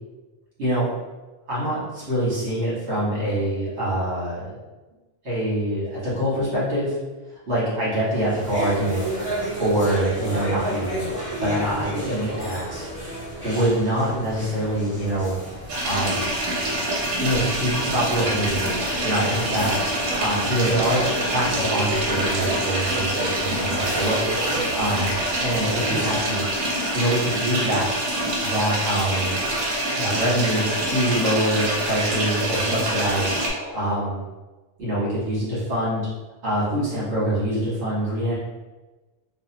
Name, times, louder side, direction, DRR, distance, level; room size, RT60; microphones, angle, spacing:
voice 1, 1.5-4.5 5.2-7.0 7.5-9.0 9.6-11.1 11.4-12.8 13.4-15.3 15.8-16.3 17.2-18.7 19.0-24.3 24.7-26.5 26.9-27.9 28.4-29.4 30.0-33.3 33.7-34.2 34.8-36.1 36.4-38.3, right 1 dB, 60° right, -9 dB, 1.8 m, -25 dB
sound 1, 8.1-26.5, right 1 dB, 30° right, 1.1 m, -32 dB
sound 2, 15.7-33.5, right 1 dB, 80° right, 1.1 m, -26 dB
sound 3, 17.8-33.9, left 2 dB, 5° right, 1.2 m, -38 dB
3.3 x 2.4 x 2.8 m, 1.2 s
omnidirectional pair, 1.3 m